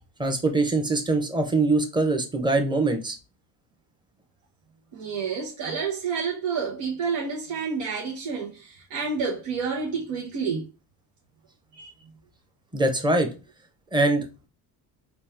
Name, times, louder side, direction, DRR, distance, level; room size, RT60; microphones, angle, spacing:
voice 1, 0.2-3.2 12.7-13.3 13.9-14.3, right 2 dB, 10° right, 0.8 m, -23 dB
voice 2, 4.9-10.7 11.7-11.9, right 5 dB, 75° right, 1.1 m, -29 dB
4.1 x 2.5 x 3.4 m
supercardioid pair, 75°, 47 cm